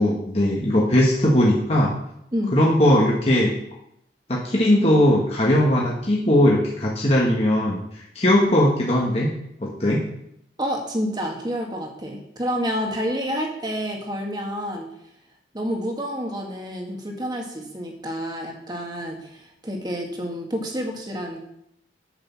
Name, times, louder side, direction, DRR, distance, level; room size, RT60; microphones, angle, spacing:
voice 1, 0.0-1.9 2.5-3.5 4.3-7.8 8.1-9.3 9.6-10.0, left 1 dB, 35° left, -4 dB, 1.5 m, -19 dB
voice 2, 10.6-14.9 15.5-21.4, equal, 25° right, 1 dB, 1.9 m, -29 dB
9.0 x 6.8 x 7.2 m, 0.76 s
head